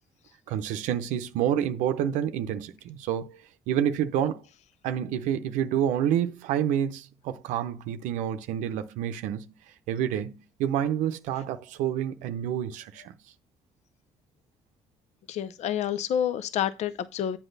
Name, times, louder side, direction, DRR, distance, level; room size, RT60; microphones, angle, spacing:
voice 1, 0.5-3.4 3.7-4.4 4.8-9.4 9.9-13.1, right 10 dB, 90° right, 0.6 m, -28 dB
voice 2, 15.3-17.4, left 9 dB, 65° left, 0.5 m, -28 dB
8.0 x 6.0 x 3.9 m
cardioid pair, 80°, 13 cm